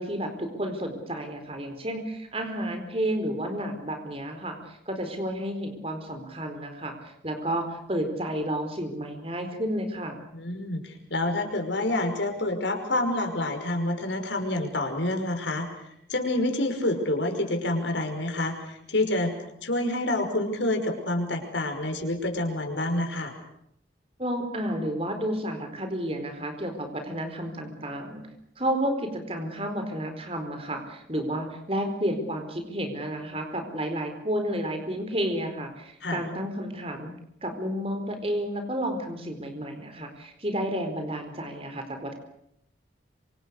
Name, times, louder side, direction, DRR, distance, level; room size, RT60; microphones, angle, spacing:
voice 1, 0.0-10.2 24.2-28.3 28.6-37.1 37.4-42.1, right 1 dB, 30° right, 6 dB, 4.4 m, -31 dB
voice 2, 10.3-19.3 19.6-23.3 36.0-36.2, left 1 dB, 85° left, 4 dB, 5.6 m, -28 dB
26.5 x 26.5 x 6.6 m, 0.75 s
head